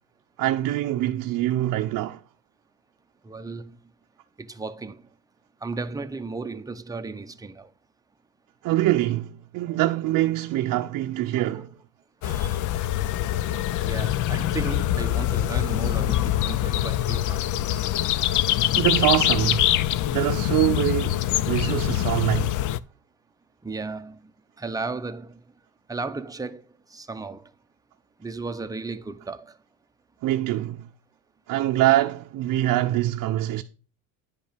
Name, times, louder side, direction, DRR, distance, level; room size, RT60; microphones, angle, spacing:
voice 1, 0.4-2.2 8.6-11.7 18.8-19.8 20.1-22.6 30.2-30.9 31.5-33.6, right 14 dB, 55° right, 0.7 m, -24 dB
voice 2, 3.2-3.8 4.4-5.1 5.6-7.7 11.4-11.7 12.2-12.6 13.8-17.8 23.6-24.2 24.6-25.4 25.9-26.6 26.9-27.5 28.2-29.6, right 3 dB, 10° right, 0.7 m, -35 dB
sound 1, 12.2-22.8, left 13 dB, 55° left, 0.6 m, -24 dB
10.5 x 5.3 x 5.1 m
cardioid pair, 115°, 38 cm